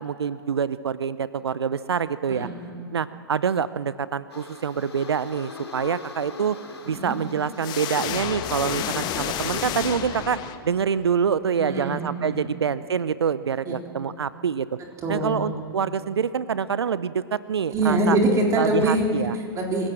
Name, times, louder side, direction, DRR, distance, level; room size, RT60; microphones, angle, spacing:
voice 1, 0.0-2.5 2.9-6.6 6.8-14.7 15.1-18.2 18.6-19.3, right 7 dB, 80° right, 16 dB, 0.6 m, -26 dB
sound 1, 4.3-9.7, left 4 dB, 85° left, 2.7 m, -39 dB
sound 2, 7.6-11.0, left 10 dB, 30° left, 1.3 m, -30 dB
voice 2, 11.6-12.5 13.6-13.7 15.0-15.5 17.7-19.0 19.3-19.9, right 1 dB, 25° right, 0 dB, 3.6 m, -24 dB
26.5 x 15.5 x 7.5 m, 2.5 s
figure-of-eight pair, 105°, 13 cm